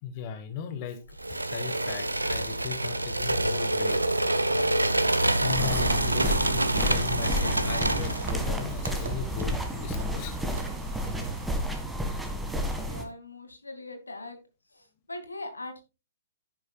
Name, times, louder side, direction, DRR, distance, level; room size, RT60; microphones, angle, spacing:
voice 1, 0.0-4.0 4.9-10.4, left 7 dB, 40° left, 8 dB, 1.4 m, -38 dB
sound 1, 1.2-8.3, right 1 dB, 85° right, 1.0 m, -26 dB
sound 2, 5.1-11.5, right 4 dB, 65° right, 1.6 m, -40 dB
sound 3, 5.5-13.1, equal, 5° right, 1.9 m, -31 dB
voice 2, 12.8-14.4 14.7-15.8, left 2 dB, 80° left, 7 dB, 2.4 m, -41 dB
10.5 x 10.0 x 2.4 m, 0.28 s
figure-of-eight pair, 115°, 0 cm